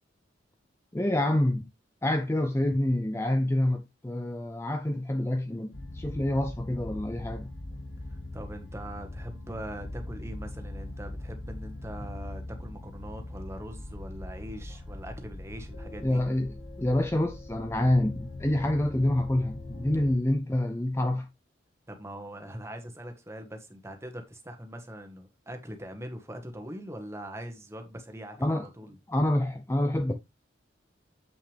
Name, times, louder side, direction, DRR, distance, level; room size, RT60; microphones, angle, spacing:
voice 1, 0.9-1.7 2.0-7.5 16.0-21.3 28.4-28.7 29.1-30.1, left 1 dB, 15° left, 0.5 m, -27 dB
sound 1, 5.7-20.2, left 1 dB, 65° left, 2.5 m, -41 dB
voice 2, 8.1-16.2 21.9-29.0, equal, 15° right, 1.4 m, -42 dB
8.2 x 6.0 x 3.4 m
head